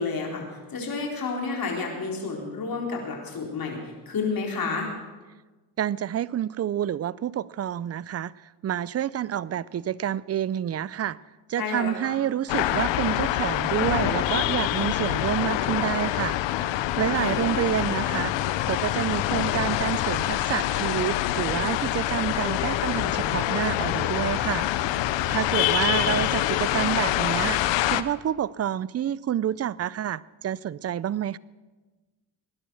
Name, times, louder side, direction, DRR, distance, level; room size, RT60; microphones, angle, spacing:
voice 1, 0.0-4.9 11.6-12.2 17.0-17.7 18.2-18.4, left 4 dB, 55° left, 0 dB, 4.1 m, -31 dB
voice 2, 5.8-8.3 8.6-11.2 11.5-16.4 17.0-18.3 18.7-24.7 25.3-27.6 27.8-31.4, right 10 dB, 35° right, 21 dB, 0.5 m, -28 dB
sound 1, 12.5-28.0, left 14 dB, 85° left, 0.8 m, -25 dB
19.5 x 11.0 x 6.3 m, 1.2 s
cardioid pair, 70°, 43 cm